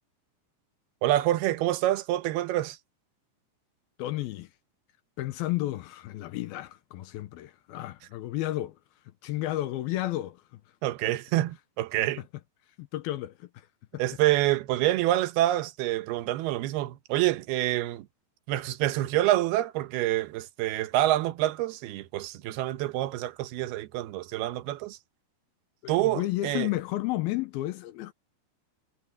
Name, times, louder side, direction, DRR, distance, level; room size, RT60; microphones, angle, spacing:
voice 1, 1.0-2.8 10.8-12.2 14.0-18.1 18.5-25.0 25.9-26.7, right 15 dB, 75° right, 2.8 m, -27 dB
voice 2, 4.0-4.5 5.2-8.8 9.2-10.6 12.0-12.1 12.8-13.7 25.8-28.1, left 16 dB, 80° left, 2.4 m, -32 dB
omnidirectional pair, 4.8 m